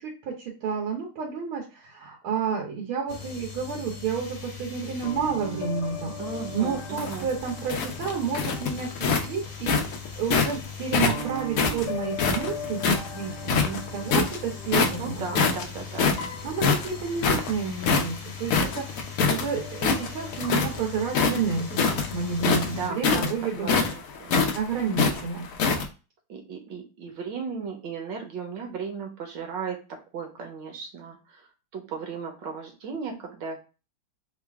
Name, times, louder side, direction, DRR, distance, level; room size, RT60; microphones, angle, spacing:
voice 1, 0.0-6.1 6.5-9.8 10.2-15.2 16.4-18.9 19.3-23.7 24.5-25.5, right 6 dB, 90° right, -2 dB, 1.8 m, -30 dB
sound 1, 3.1-22.9, left 4 dB, 55° left, 1.3 m, -38 dB
voice 2, 6.2-7.3 15.0-16.2 22.8-24.5 26.3-29.8 30.1-33.6, right 5 dB, 70° right, 3 dB, 1.4 m, -36 dB
sound 2, 6.8-10.6 10.9-13.1 13.4-14.4 14.7-15.1 15.3-19.4 19.7-20.8 21.1-25.8, left 5 dB, 85° left, 0.7 m, -24 dB
3.8 x 2.4 x 3.3 m, 0.32 s
omnidirectional pair, 2.3 m